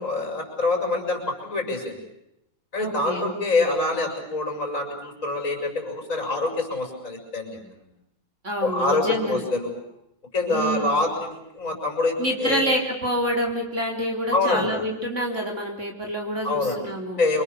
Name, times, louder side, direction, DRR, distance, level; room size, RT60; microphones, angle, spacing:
voice 1, 0.0-2.0 2.7-7.6 8.6-9.8 10.3-12.6 14.3-14.8 16.4-16.8 17.2-17.4, left 2 dB, 45° left, 2 dB, 6.8 m, -25 dB
voice 2, 2.8-3.3 8.4-9.4 10.5-11.0 12.2-17.2, equal, 40° right, 1 dB, 4.2 m, -27 dB
28.5 x 25.5 x 7.0 m, 0.84 s
omnidirectional pair, 2.0 m